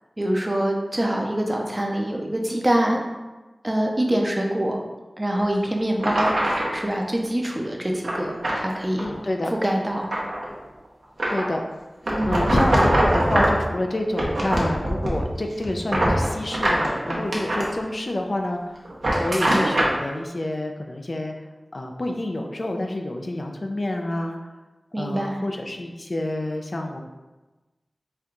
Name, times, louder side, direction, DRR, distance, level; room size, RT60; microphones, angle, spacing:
voice 1, 0.2-3.0 3.6-4.8 5.2-6.3 6.7-9.1 9.5-10.1 12.1-12.5 24.9-25.4, right 1 dB, 25° right, 1 dB, 0.6 m, -24 dB
sound 1, 5.4-5.5 6.0-6.8 8.0-8.6 9.0-9.2 9.6-10.5 11.2-11.5 12.1-13.7 14.1-15.3 15.6-17.7 18.9-20.0, right 1 dB, 75° right, 0.8 m, -23 dB
voice 2, 9.0-9.5 11.3-11.6 12.3-18.9 19.2-21.3 21.7-24.4 25.0-27.0, left 1 dB, 50° left, 3 dB, 0.4 m, -28 dB
4.3 x 2.3 x 3.8 m, 1.1 s
wide cardioid pair, 75°, 0 cm